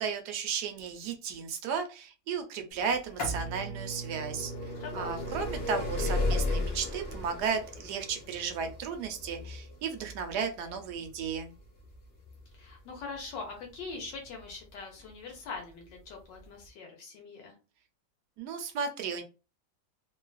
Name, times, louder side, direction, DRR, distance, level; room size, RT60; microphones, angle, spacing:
voice 1, 0.0-4.5 4.9-11.5 18.4-19.2, right 6 dB, 75° right, 6 dB, 1.0 m, -34 dB
sound 1, 2.9-14.5 15.3-15.4 16.4-16.5 16.7-16.8, left 2 dB, 50° left, 0.7 m, -35 dB
voice 2, 4.6-5.4 12.5-17.5, left 4 dB, 80° left, 1 dB, 1.3 m, -43 dB
3.0 x 2.3 x 2.3 m, 0.31 s
omnidirectional pair, 2.0 m